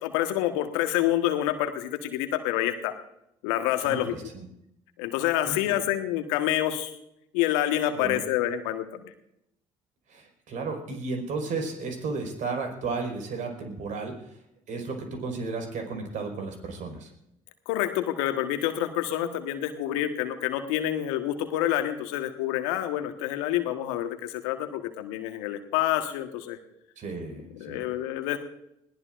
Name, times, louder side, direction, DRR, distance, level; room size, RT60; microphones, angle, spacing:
voice 1, 0.0-2.9 3.4-4.1 5.0-6.9 7.3-9.1 17.7-26.6 27.3-28.4, left 13 dB, 70° left, 7 dB, 1.5 m, -27 dB
voice 2, 3.8-4.5 5.5-5.6 7.9-8.2 10.1-14.4 14.7-17.1 27.0-27.9, right 4 dB, 55° right, 3 dB, 5.0 m, -34 dB
21.0 x 18.0 x 2.6 m, 0.79 s
hypercardioid pair, 55°, 16 cm